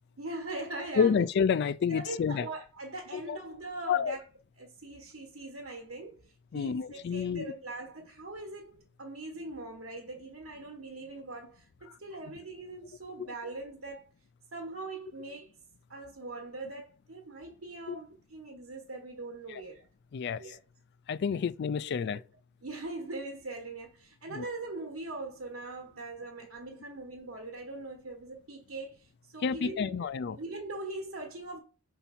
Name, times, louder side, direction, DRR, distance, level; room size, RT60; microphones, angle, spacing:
voice 1, 0.2-1.1 1.9-4.2 4.6-14.0 14.5-15.5 15.9-19.9 20.4-20.6 21.3-21.4 22.1-22.2 22.6-31.6, right 2 dB, 80° right, 1.2 m, -41 dB
voice 2, 1.0-2.5 3.1-3.4 3.9-4.2 6.5-7.5 13.2-13.3 17.9-18.0 19.5-19.6 20.1-20.4 21.1-22.2 24.3-24.4 29.4-30.4, left 6 dB, 50° left, 0.3 m, -29 dB
5.8 x 4.5 x 4.1 m
head